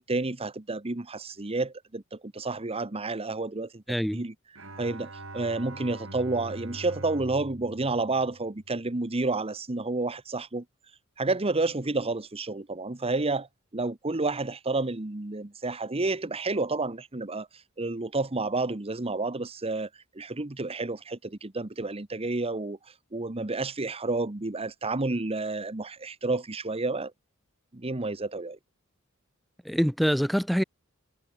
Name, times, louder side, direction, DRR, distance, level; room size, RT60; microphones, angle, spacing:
voice 1, 0.0-4.3 4.8-10.6 11.2-13.5 13.7-17.5 17.8-19.9 20.1-22.8 23.1-27.1 27.7-28.6, right 3 dB, 30° right, 1.1 m, -30 dB
voice 2, 3.9-4.2 29.7-30.6, equal, ahead, 1.0 m, -25 dB
Bowed string instrument, 4.5-9.0, right 1 dB, 70° right, 7.9 m, -43 dB
head